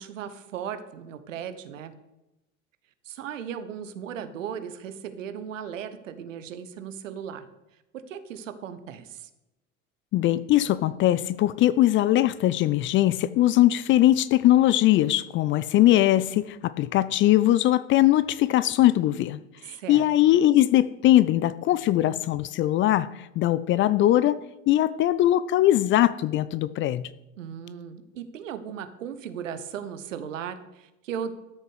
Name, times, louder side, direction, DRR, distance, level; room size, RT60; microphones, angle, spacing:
voice 1, 0.0-1.9 3.1-7.5 7.9-9.3 19.7-20.0 27.4-31.3, right 8 dB, 70° right, 1.1 m, -37 dB
voice 2, 10.1-19.4 19.9-23.1 23.4-27.1, left 14 dB, 30° left, 0.4 m, -21 dB
12.5 x 6.6 x 6.4 m
figure-of-eight pair, 70°, 39 cm